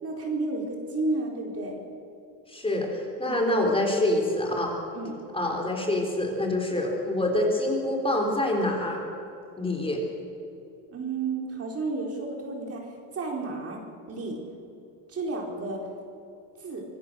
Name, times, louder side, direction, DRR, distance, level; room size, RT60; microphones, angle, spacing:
voice 1, 0.0-1.8 3.3-3.4 4.9-5.1 10.9-13.8 14.1-14.4 15.1-15.9 16.6-16.8, right 3 dB, 35° right, 0 dB, 4.3 m, -32 dB
voice 2, 2.5-4.7 5.3-9.0 9.6-10.0, left 1 dB, 15° left, 1 dB, 3.9 m, -26 dB
25.5 x 16.0 x 6.5 m, 2.8 s
cardioid pair, 120°, 43 cm